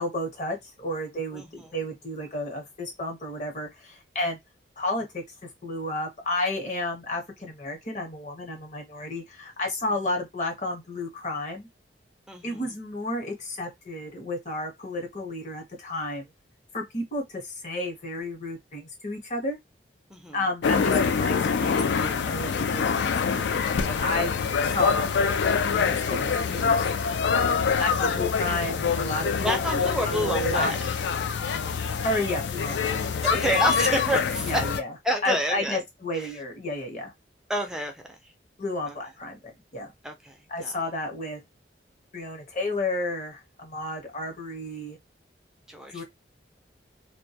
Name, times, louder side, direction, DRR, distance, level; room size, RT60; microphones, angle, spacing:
voice 1, 0.0-4.4 4.8-5.2 5.6-11.7 12.4-16.3 16.7-19.6 20.3-24.3 24.6-25.1 25.7-26.8 27.8-30.8 32.0-33.2 34.4-34.9 35.2-37.1 38.6-39.9 40.5-41.4 42.1-45.0 45.9-46.0, left 1 dB, 40° left, 0.8 m, -32 dB
voice 2, 1.3-1.7 12.3-12.7 20.1-20.4 29.4-30.8 33.2-34.6 35.0-35.8 36.1-36.4 37.5-38.0 40.0-40.3 40.6-40.7 45.7-46.0, equal, 5° right, 0.4 m, -28 dB
sound 1, 20.6-34.8, left 6 dB, 70° left, 0.3 m, -25 dB
2.2 x 2.1 x 2.7 m
head